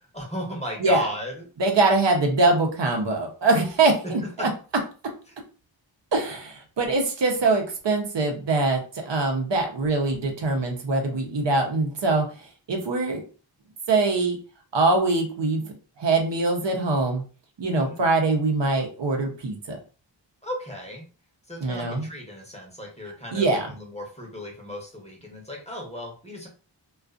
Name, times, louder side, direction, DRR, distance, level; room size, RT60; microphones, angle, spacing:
voice 1, 0.1-1.3 17.7-18.0 20.4-21.0 21.5-26.5, equal, 15° left, 0 dB, 0.8 m, -36 dB
voice 2, 1.6-4.2 6.1-12.2 12.7-13.2 13.9-14.4 14.7-15.6 16.0-17.2 17.6-19.8 21.6-22.1 23.3-23.7, right 3 dB, 65° right, 2 dB, 0.8 m, -23 dB
2.4 x 2.4 x 2.4 m, 0.36 s
wide cardioid pair, 75°, 46 cm